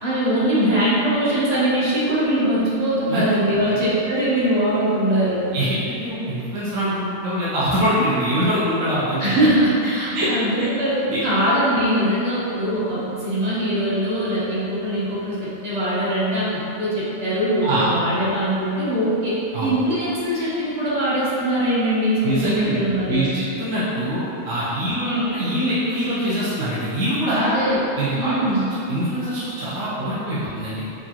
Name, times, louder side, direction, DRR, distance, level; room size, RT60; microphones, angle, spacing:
voice 1, 0.0-5.4 9.2-11.0 11.2-23.4 25.0-25.3 27.4-27.8 28.1-28.7, right 1 dB, 35° right, -9 dB, 0.8 m, -22 dB
voice 2, 5.5-9.4 10.1-10.3 10.6-10.7 11.1-11.2 17.6-17.9 19.5-19.8 22.2-27.5 28.0-28.6 28.9-30.8, equal, 65° right, -10 dB, 1.2 m, -24 dB
4.6 x 2.6 x 2.9 m, 2.8 s
omnidirectional pair, 1.5 m